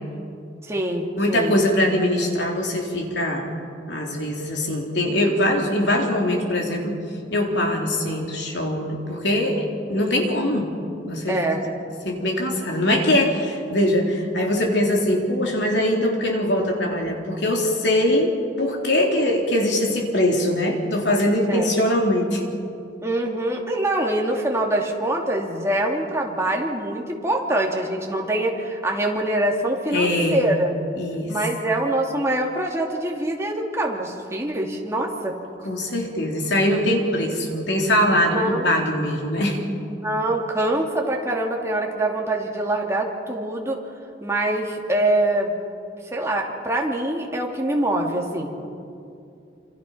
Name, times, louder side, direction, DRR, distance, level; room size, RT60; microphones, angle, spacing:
voice 1, 0.6-1.5 11.3-11.6 21.5-21.7 23.0-30.7 31.3-35.3 38.3-38.7 39.9-43.8 44.2-45.5 46.1-48.7, right 1 dB, 15° right, 0 dB, 2.8 m, -24 dB
voice 2, 1.2-3.5 3.9-7.0 7.3-10.7 11.0-11.4 12.0-22.4 29.9-30.6 31.0-31.4 35.6-39.6, left 1 dB, 70° left, 1 dB, 3.7 m, -22 dB
27.0 x 27.0 x 5.8 m, 2.6 s
head